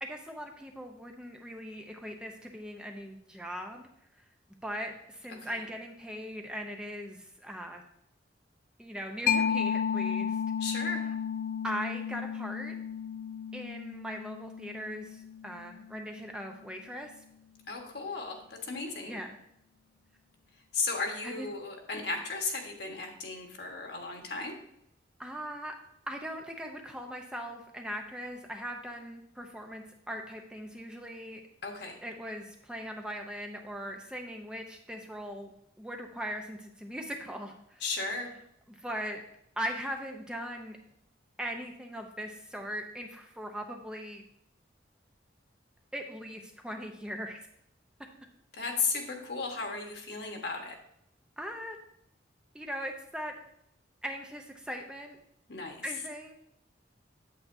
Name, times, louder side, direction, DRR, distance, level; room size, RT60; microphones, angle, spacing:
voice 1, 0.0-3.8 4.6-7.8 8.8-10.4 11.6-12.7 13.5-17.1 19.1-19.3 21.2-21.5 25.2-25.7 26.1-31.4 32.0-35.5 35.8-37.8 38.8-39.2 39.6-40.8 41.4-44.2 45.9-47.4 51.4-51.8 52.5-53.3 54.0-55.2 55.8-56.3, equal, 5° right, 2 dB, 0.6 m, -39 dB
voice 2, 5.3-5.6 10.6-11.0 17.7-19.2 20.7-24.6 31.6-32.0 37.8-38.3 48.5-50.8 55.5-55.9, left 4 dB, 65° left, 2 dB, 1.3 m, -35 dB
Mallet percussion, 9.3-16.5, left 7 dB, 45° left, 0.3 m, -33 dB
8.4 x 8.3 x 2.6 m, 0.74 s
head